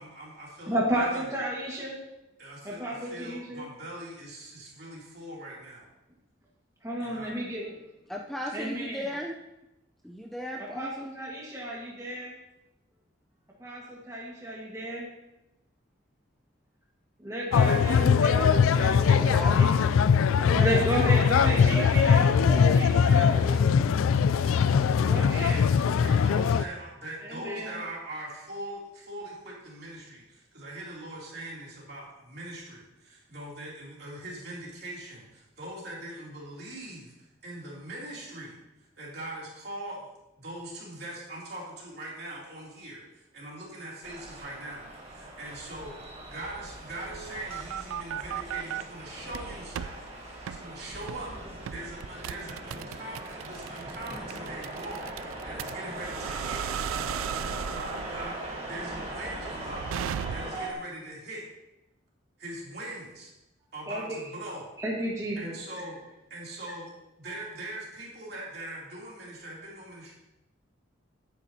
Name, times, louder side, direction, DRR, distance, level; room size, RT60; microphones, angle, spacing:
voice 1, 0.0-1.2 2.4-5.9 7.0-7.3 24.1-37.1 37.4-38.6 39.0-40.1 40.4-45.9 46.3-56.6 57.7-58.4 58.6-60.0 60.3-61.4 62.4-63.3 63.7-64.7 65.4-66.0 66.3-66.9 67.2-70.1, right 1 dB, 50° right, -4 dB, 3.0 m, -41 dB
voice 2, 0.7-2.0 2.6-3.7 6.8-7.7 8.5-9.1 10.6-12.4 13.6-15.1 17.2-19.9 20.2-22.3 22.7-23.8 25.1-25.6 27.2-27.8 63.9-64.2 64.8-65.9, right 1 dB, 15° right, -4 dB, 1.6 m, -32 dB
voice 3, 8.1-9.3 10.0-11.2 19.2-19.5 20.4-21.2 21.7-21.9 22.4-22.9, equal, ahead, 0 dB, 0.5 m, -36 dB
sound 1, 17.5-26.6, left 6 dB, 85° left, 0.3 m, -21 dB
sound 2, 44.0-60.7, right 1 dB, 30° right, 1.6 m, -40 dB
sound 3, 47.1-48.8 49.3-49.9 50.5-50.6 51.1-51.3 51.7-60.7, right 9 dB, 85° right, 0.3 m, -36 dB
11.5 x 9.2 x 2.8 m, 0.92 s
head